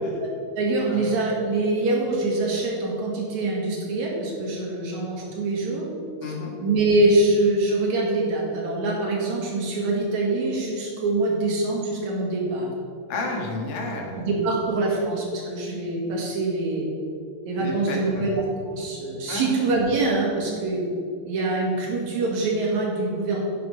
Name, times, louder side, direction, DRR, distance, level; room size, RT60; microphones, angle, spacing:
voice 1, 0.2-5.8 6.2-6.3 6.6-12.7 14.2-16.9 17.5-20.8 21.2-23.4, right 2 dB, 60° right, -3 dB, 3.3 m, -24 dB
voice 2, 13.1-14.2 17.6-18.3 19.3-19.6, left 3 dB, 85° left, 0 dB, 3.4 m, -31 dB
10.5 x 7.7 x 5.3 m, 2.4 s
omnidirectional pair, 3.7 m